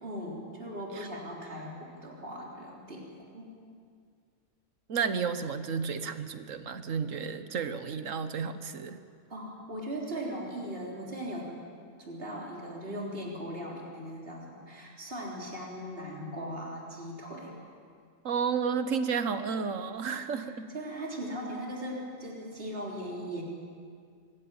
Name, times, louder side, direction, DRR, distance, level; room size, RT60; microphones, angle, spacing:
voice 1, 0.0-3.1 3.3-3.5 9.3-11.5 12.0-17.6 20.4-23.4, equal, 40° right, -3 dB, 3.8 m, -39 dB
voice 2, 4.9-9.0 18.2-20.7, right 6 dB, 60° right, 10 dB, 1.5 m, -32 dB
26.0 x 16.0 x 8.8 m, 2.2 s
omnidirectional pair, 1.6 m